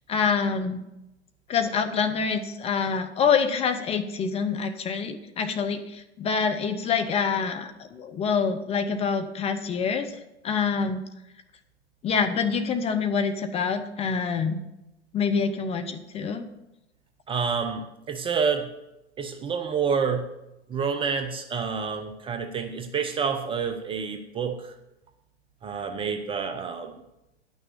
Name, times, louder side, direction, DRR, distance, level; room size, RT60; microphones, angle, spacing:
voice 1, 0.1-0.8 1.5-10.1 10.4-11.0 12.0-14.6 15.1-16.5, left 6 dB, 20° left, 8 dB, 0.7 m, -26 dB
voice 2, 17.3-18.7 19.2-20.3 20.7-24.7 25.6-27.0, right 6 dB, 15° right, 6 dB, 0.6 m, -28 dB
10.5 x 6.3 x 6.8 m, 0.91 s
hypercardioid pair, 110°, 34 cm